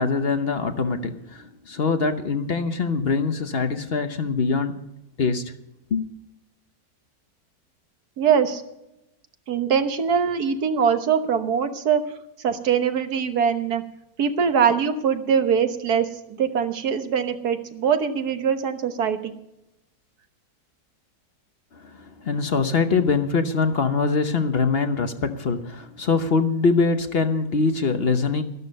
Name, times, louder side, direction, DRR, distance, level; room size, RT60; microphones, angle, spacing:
voice 1, 0.0-4.9 5.2-5.4 5.9-6.0 21.7-28.4, left 4 dB, 45° left, 1.0 m, -23 dB
voice 2, 8.2-8.6 9.5-12.0 12.4-13.8 14.2-16.1 16.4-19.3, right 7 dB, 90° right, 1.7 m, -22 dB
13.0 x 12.5 x 5.3 m
omnidirectional pair, 1.6 m